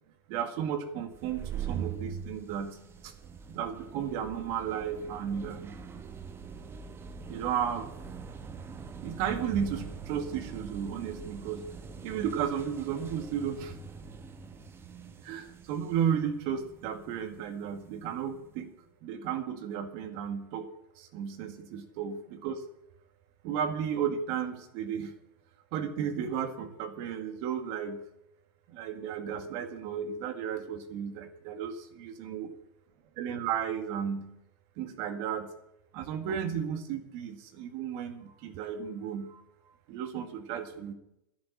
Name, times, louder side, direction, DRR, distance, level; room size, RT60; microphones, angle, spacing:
voice 1, 0.3-3.1 3.5-5.8 7.3-7.9 9.0-11.7 12.0-13.8 15.2-18.7 19.0-20.7 21.0-22.6 23.4-25.2 25.7-28.1 28.7-32.5 33.2-34.4 34.8-35.5 35.9-39.4 39.9-40.9, right 8 dB, 50° right, 7 dB, 1.8 m, -34 dB
sound 1, 1.1-18.5, right 6 dB, 20° right, 1.1 m, -43 dB
11.5 x 10.5 x 6.6 m, 0.84 s
supercardioid pair, 130°, 12 cm